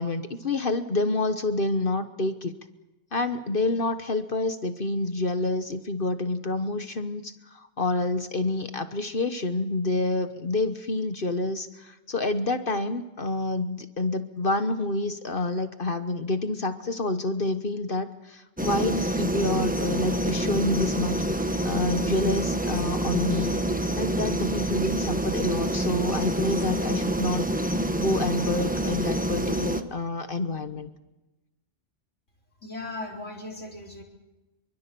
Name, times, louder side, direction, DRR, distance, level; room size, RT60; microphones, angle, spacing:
voice 1, 0.0-2.5 3.1-23.6 24.0-27.5 28.0-30.9, left 2 dB, 50° left, 9 dB, 1.3 m, -28 dB
sound 1, 18.6-29.8, right 1 dB, 5° right, 1.1 m, -27 dB
voice 2, 32.6-34.0, left 2 dB, 85° left, -1 dB, 4.6 m, -37 dB
26.0 x 24.0 x 6.9 m, 1.0 s
omnidirectional pair, 1.2 m